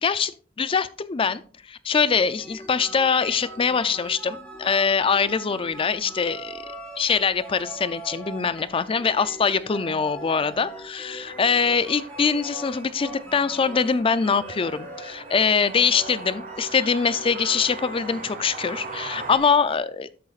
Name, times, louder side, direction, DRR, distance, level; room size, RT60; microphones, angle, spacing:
voice 1, 0.0-0.3 0.6-1.4 1.7-6.6 7.0-20.1, left 5 dB, 30° left, 15 dB, 0.4 m, -23 dB
sound 1, 2.1-19.8, right 1 dB, 5° left, 2.3 m, -41 dB
sound 2, 11.2-19.4, right 4 dB, 45° right, 1.1 m, -41 dB
13.0 x 6.7 x 2.4 m, 0.43 s
head